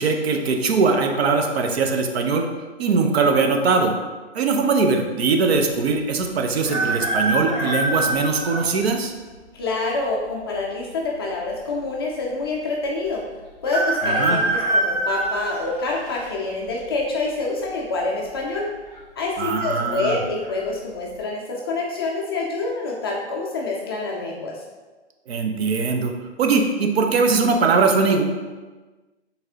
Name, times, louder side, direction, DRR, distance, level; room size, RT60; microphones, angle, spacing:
voice 1, 0.0-2.5 2.8-3.9 4.3-9.1 14.0-14.4 19.4-20.2 25.3-26.1 26.4-28.2, right 4 dB, 60° right, 4 dB, 0.7 m, -21 dB
sound 1, 6.6-8.7 9.3-9.4 10.5-11.2 11.5-11.6 11.7-11.8 13.6-16.3 16.8-17.2 18.3-18.7 18.9-19.0 19.6-19.9 20.4-20.6, right 1 dB, 20° right, 1.2 m, -24 dB
voice 2, 9.5-13.3 13.6-18.7 19.2-24.6, left 3 dB, 25° left, -2 dB, 0.4 m, -26 dB
4.5 x 3.3 x 2.8 m, 1.3 s
figure-of-eight pair, 125°, 35 cm